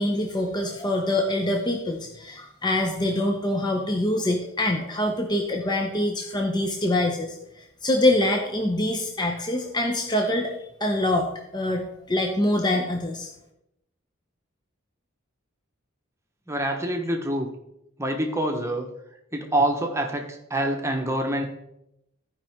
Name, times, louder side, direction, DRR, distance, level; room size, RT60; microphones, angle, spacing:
voice 1, 0.0-10.5 10.8-13.3, left 1 dB, 20° left, 2 dB, 0.7 m, -25 dB
voice 2, 16.5-17.5 18.0-18.9 19.3-21.4, right 1 dB, 15° right, 2 dB, 1.1 m, -26 dB
15.0 x 5.2 x 3.6 m, 0.84 s
head